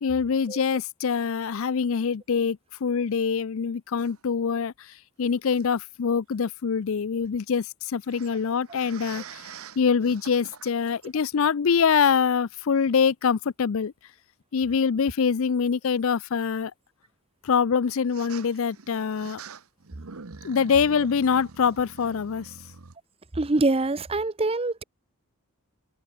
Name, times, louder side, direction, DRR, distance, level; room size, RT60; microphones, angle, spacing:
voice 1, 0.0-4.7 5.2-9.4 9.8-13.9 14.5-16.7 17.4-19.4 20.4-22.5, left 6 dB, 65° left, 0.5 m, -24 dB
sound 1, 4.0-4.2 5.5-5.6 8.0-11.1 11.8-11.9 14.7-14.8 18.1-23.0, right 5 dB, 70° right, 1.1 m, -45 dB
voice 2, 23.3-24.8, right 2 dB, 25° right, 0.7 m, -25 dB
head